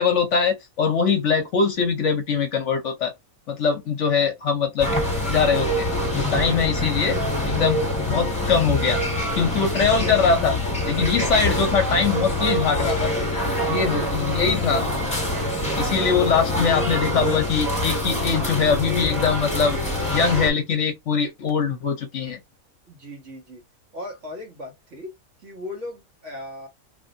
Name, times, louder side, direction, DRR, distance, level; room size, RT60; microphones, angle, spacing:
voice 1, 0.0-3.1 3.5-4.9 5.3-5.9 6.1-9.0 9.3-10.6 10.8-13.1 13.7-14.9 15.8-19.8 20.1-22.4, left 5 dB, 60° left, 1.0 m, -22 dB
sound 1, 4.8-20.5, left 1 dB, 5° left, 1.6 m, -25 dB
voice 2, 22.9-23.6 23.9-25.1 25.4-26.7, left 2 dB, 55° right, 1.7 m, -37 dB
3.2 x 2.7 x 2.6 m
omnidirectional pair, 1.6 m